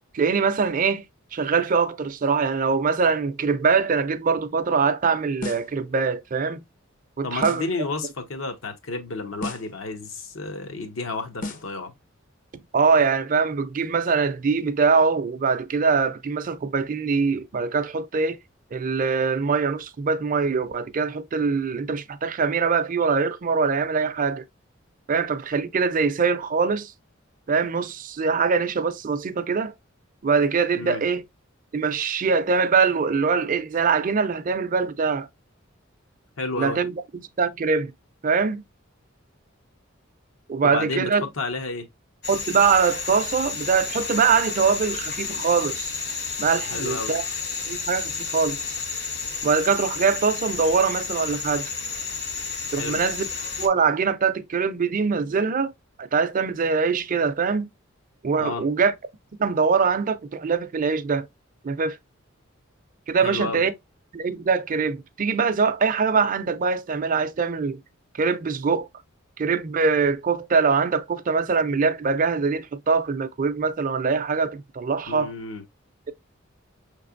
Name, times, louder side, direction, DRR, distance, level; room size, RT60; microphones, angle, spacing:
voice 1, 0.1-1.0 1.3-6.6 7.2-7.7 12.7-18.4 18.7-24.4 25.1-26.9 27.5-29.7 30.2-31.2 31.7-35.3 36.6-37.9 38.2-38.6 40.5-41.3 42.3-45.9 46.4-47.2 47.7-48.6 49.4-51.7 52.7-53.3 53.6-55.7 56.0-57.7 58.2-58.9 59.4-61.3 61.6-62.0 63.1-63.7 64.1-67.8 68.2-68.9 69.4-75.3, right 5 dB, 40° right, 0.4 m, -23 dB
sound 1, 5.4-5.8 7.4-7.8 9.4-9.8 11.4-11.8, left 2 dB, 40° left, 0.6 m, -34 dB
voice 2, 7.2-11.9 30.8-31.0 36.4-36.8 40.6-41.9 46.7-47.1 52.8-53.0 58.4-58.6 63.2-63.6 75.1-75.6, left 3 dB, 80° left, 1.0 m, -31 dB
sound 2, 42.2-53.7, left 4 dB, 55° left, 1.2 m, -31 dB
5.6 x 3.3 x 2.5 m
head